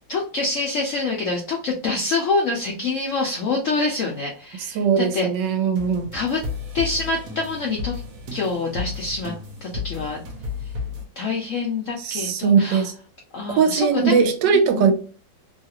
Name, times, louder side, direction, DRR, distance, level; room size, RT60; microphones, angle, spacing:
voice 1, 0.1-5.3 6.1-6.4 6.7-8.0 8.3-9.3 9.6-10.2 11.2-12.8 13.3-14.2 14.8-14.9, left 3 dB, 70° left, 0.7 m, -26 dB
voice 2, 4.6-6.1 12.0-12.9 13.5-14.9, right 6 dB, 75° right, 1.2 m, -20 dB
sound 1, 5.8-11.1, left 4 dB, 60° right, 1.0 m, -33 dB
3.1 x 2.4 x 2.8 m
omnidirectional pair, 2.0 m